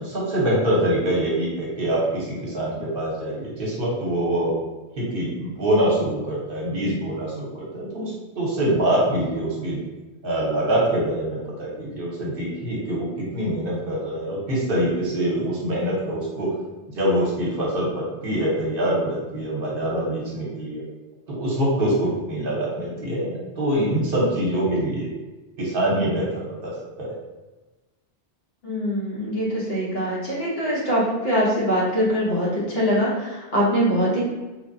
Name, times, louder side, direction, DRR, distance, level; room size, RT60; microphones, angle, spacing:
voice 1, 0.0-4.5 4.9-9.8 10.2-16.5 16.9-20.8 21.3-25.1 25.6-26.7 27.0-27.1, right 1 dB, 65° right, -5 dB, 0.9 m, -24 dB
voice 2, 28.6-34.2, equal, 75° left, -6 dB, 1.1 m, -23 dB
3.0 x 2.1 x 2.5 m, 1.2 s
omnidirectional pair, 1.0 m